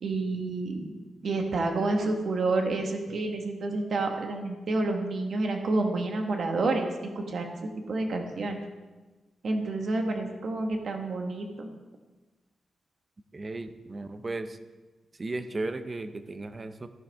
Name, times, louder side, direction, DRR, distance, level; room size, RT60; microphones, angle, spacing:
voice 1, 0.0-0.9 1.2-7.5 7.9-8.6 9.4-11.7, right 2 dB, 50° right, 3 dB, 1.5 m, -29 dB
voice 2, 13.3-14.6 15.2-16.9, right 2 dB, 25° right, 9 dB, 0.6 m, -35 dB
14.0 x 10.5 x 3.5 m, 1.2 s
wide cardioid pair, 175°, 0 cm